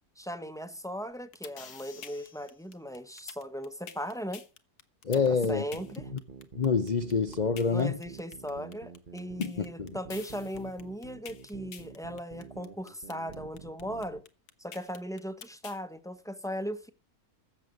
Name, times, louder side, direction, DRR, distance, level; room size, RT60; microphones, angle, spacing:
voice 1, 0.2-4.4 5.1-6.0 7.7-14.2 14.6-16.9, equal, ahead, 1.1 m, -38 dB
sound 1, 1.1-15.8, left 8 dB, 90° left, 1.8 m, -47 dB
voice 2, 5.0-5.6 6.6-8.0 9.4-10.0, left 5 dB, 40° left, 0.7 m, -27 dB
sound 2, 5.8-14.2, right 5 dB, 35° right, 1.4 m, -48 dB
14.5 x 7.7 x 6.5 m
omnidirectional pair, 1.6 m